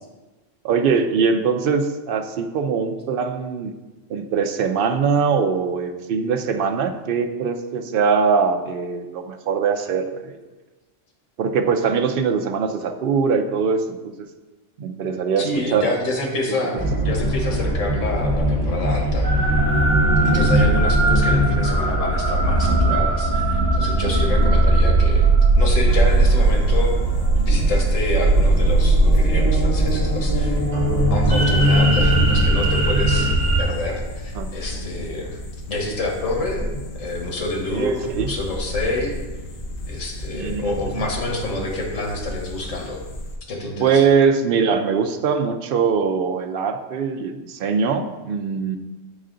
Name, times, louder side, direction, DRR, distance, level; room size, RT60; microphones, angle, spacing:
voice 1, 0.6-3.7 4.1-10.4 11.4-14.1 14.8-15.9 16.5-16.6 20.2-20.5 24.3-24.6 34.3-34.5 37.7-38.3 40.3-40.8 43.8-48.8, right 5 dB, 60° right, 5 dB, 0.6 m, -22 dB
voice 2, 15.4-19.3 20.2-27.0 27.4-30.6 31.1-33.3 33.6-35.4 35.7-36.7 37.0-39.1 39.9-43.0 43.5-44.0, left 2 dB, 85° left, 0 dB, 1.5 m, -28 dB
sound 1, 16.8-33.6, right 2 dB, 40° right, 1.7 m, -18 dB
sound 2, 25.9-43.4, left 1 dB, 45° left, 0.6 m, -31 dB
7.8 x 4.1 x 3.8 m, 1.2 s
omnidirectional pair, 1.3 m